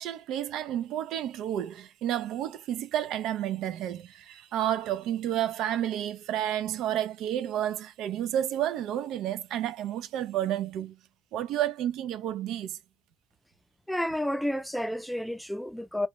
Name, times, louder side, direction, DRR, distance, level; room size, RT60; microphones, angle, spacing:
voice 1, 0.0-11.0 11.3-12.8, right 11 dB, 70° right, 0.3 m, -31 dB
voice 2, 13.9-16.1, left 1 dB, ahead, 0.4 m, -30 dB
2.2 x 2.0 x 2.8 m
hypercardioid pair, 60°, 0 cm